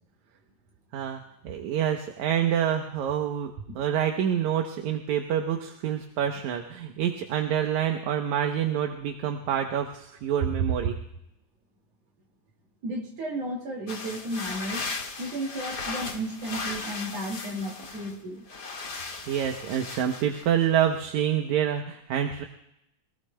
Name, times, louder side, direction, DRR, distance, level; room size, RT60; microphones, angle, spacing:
voice 1, 0.9-11.0 19.3-22.4, right 9 dB, 80° right, 4 dB, 2.3 m, -27 dB
voice 2, 12.8-14.9 15.2-18.5, right 1 dB, 60° right, 2 dB, 3.4 m, -33 dB
sound 1, 13.9-18.1 18.5-20.6, left 4 dB, 40° left, 1.4 m, -37 dB
25.5 x 18.0 x 2.2 m, 0.82 s
omnidirectional pair, 3.3 m